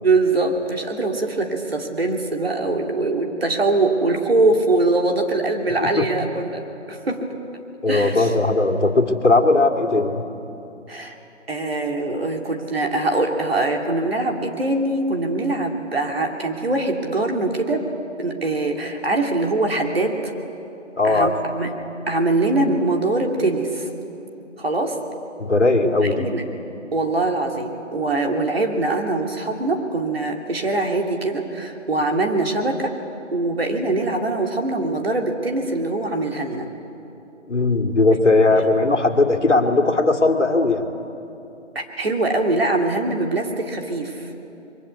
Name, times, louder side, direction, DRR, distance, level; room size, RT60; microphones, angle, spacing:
voice 1, 0.0-7.3 7.9-8.3 10.9-11.2 11.5-20.3 21.0-21.7 22.1-23.9 24.6-25.0 25.8-26.5 26.9-32.9 33.3-36.7 38.5-38.6 41.7-44.3, right 2 dB, 50° right, 2 dB, 2.7 m, -23 dB
voice 2, 7.8-10.3 21.0-21.3 25.4-26.3 37.5-40.9, left 2 dB, 70° left, 5 dB, 2.4 m, -18 dB
25.0 x 22.5 x 8.3 m, 3.0 s
figure-of-eight pair, 170°, 37 cm